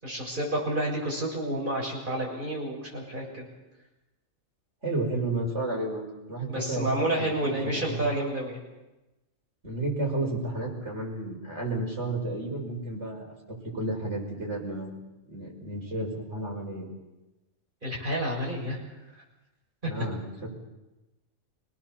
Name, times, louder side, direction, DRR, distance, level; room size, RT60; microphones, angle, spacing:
voice 1, 0.0-3.5 6.5-8.6 17.8-18.8 19.8-19.9, right 1 dB, 35° right, -3 dB, 7.1 m, -30 dB
voice 2, 4.8-8.0 9.6-15.0 15.3-16.9 19.9-20.5, right 2 dB, 55° right, -1 dB, 5.6 m, -32 dB
26.5 x 18.5 x 7.2 m, 1.0 s
omnidirectional pair, 1.4 m